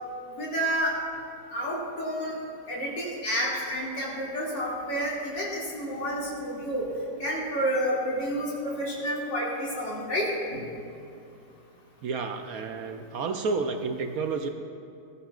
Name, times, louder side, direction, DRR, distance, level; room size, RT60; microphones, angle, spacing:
voice 1, 0.4-0.9 1.5-2.3 2.7-6.9 7.2-10.6, equal, 85° left, -5 dB, 3.1 m, -30 dB
voice 2, 12.0-14.5, right 4 dB, 65° right, 6 dB, 1.0 m, -30 dB
19.0 x 13.0 x 2.4 m, 2.6 s
omnidirectional pair, 1.9 m